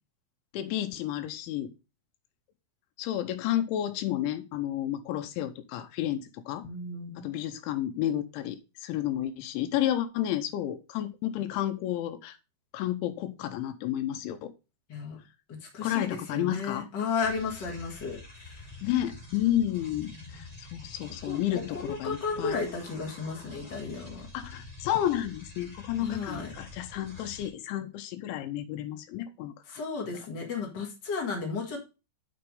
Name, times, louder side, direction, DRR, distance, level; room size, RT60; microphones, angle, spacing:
voice 1, 0.5-1.7 3.0-6.7 7.2-12.4 12.7-14.5 15.8-16.9 18.8-22.6 24.3-29.8, left 12 dB, 90° left, 3.1 m, -31 dB
voice 2, 6.6-7.3 14.9-15.2 15.5-18.2 21.2-21.4 21.7-24.3 26.0-26.5 29.7-31.8, left 5 dB, 75° left, 1.0 m, -33 dB
sound 1, 17.2-27.5, left 3 dB, 15° left, 1.9 m, -47 dB
6.8 x 6.1 x 5.2 m
omnidirectional pair, 5.3 m